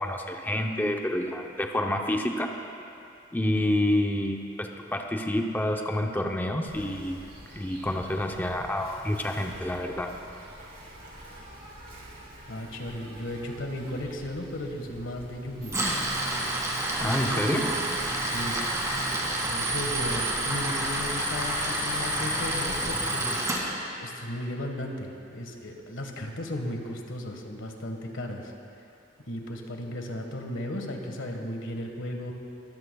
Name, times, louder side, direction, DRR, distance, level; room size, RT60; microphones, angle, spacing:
voice 1, 0.0-2.6 3.3-7.3 7.5-10.2 17.0-17.7, left 1 dB, 10° left, 3 dB, 0.6 m, -28 dB
Insect, 6.7-22.9, right 1 dB, 55° right, 3.3 m, -46 dB
voice 2, 12.5-15.8 17.0-17.7 18.2-18.6 19.5-23.4 24.0-28.5 29.2-32.3, left 1 dB, 85° left, 3 dB, 1.4 m, -35 dB
Tools, 15.6-23.6, right 1 dB, 15° right, 2.1 m, -29 dB
23.0 x 14.5 x 2.3 m, 2.6 s
head